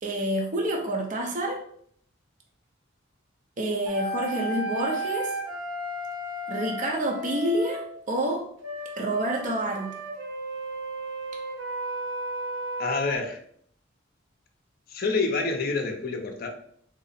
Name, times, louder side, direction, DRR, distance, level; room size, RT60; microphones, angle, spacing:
voice 1, 0.0-1.6 3.6-5.3 6.5-7.8 8.1-8.5 9.0-9.9, right 1 dB, 40° right, 1 dB, 0.5 m, -28 dB
sound 1, 3.9-7.8 8.6-13.2, right 1 dB, 85° right, 0.9 m, -34 dB
voice 2, 12.8-13.4 14.9-16.5, left 3 dB, 45° left, 4 dB, 0.5 m, -27 dB
3.7 x 2.0 x 4.0 m, 0.64 s
head